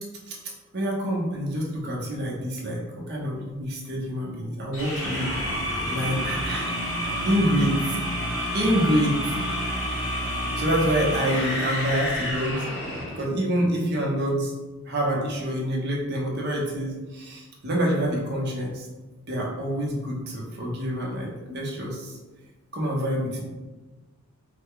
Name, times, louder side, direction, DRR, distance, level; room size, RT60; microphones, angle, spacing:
voice 1, 0.7-2.8 3.1-5.3 5.9-6.7 7.2-8.0 8.5-9.3 10.6-12.7 13.1-14.5 14.9-18.9 19.3-22.2 22.7-23.4, equal, 50° right, -2 dB, 0.8 m, -26 dB
sound 1, 4.7-13.2, equal, 70° left, 1.5 m, -29 dB
3.3 x 2.2 x 3.6 m, 1.2 s
head